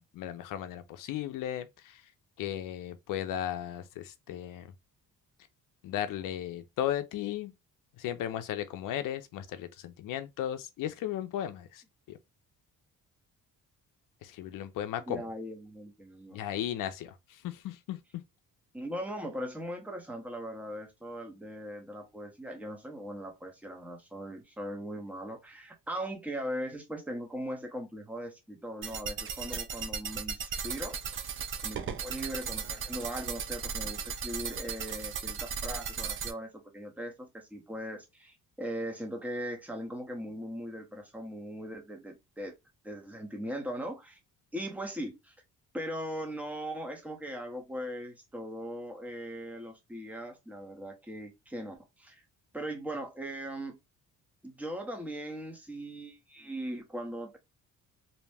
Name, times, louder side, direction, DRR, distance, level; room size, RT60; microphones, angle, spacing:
voice 1, 0.0-2.0 2.4-4.7 5.8-7.5 8.0-11.8 14.2-15.2 16.3-17.1 17.4-18.0, left 11 dB, 70° left, 0.5 m, -35 dB
voice 2, 15.1-16.4 18.7-31.0 31.6-42.5 42.8-44.2 44.5-45.3 45.7-52.2 52.5-53.8 54.4-57.4, equal, 5° right, 0.7 m, -39 dB
sound 1, 28.8-36.3, right 6 dB, 40° right, 0.4 m, -36 dB
2.7 x 2.0 x 3.3 m
cardioid pair, 110°, 34 cm